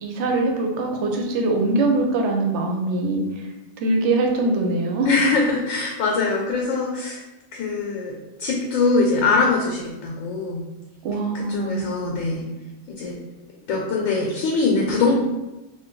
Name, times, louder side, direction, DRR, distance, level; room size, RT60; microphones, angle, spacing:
voice 1, 0.0-3.5 3.8-5.1 11.0-11.8, right 2 dB, 70° right, 2 dB, 0.8 m, -22 dB
voice 2, 5.1-7.2 7.5-10.6 11.3-12.4 12.9-13.1 13.7-15.1, left 3 dB, 80° left, 0 dB, 1.0 m, -22 dB
2.6 x 2.2 x 3.7 m, 1.0 s
omnidirectional pair, 1.3 m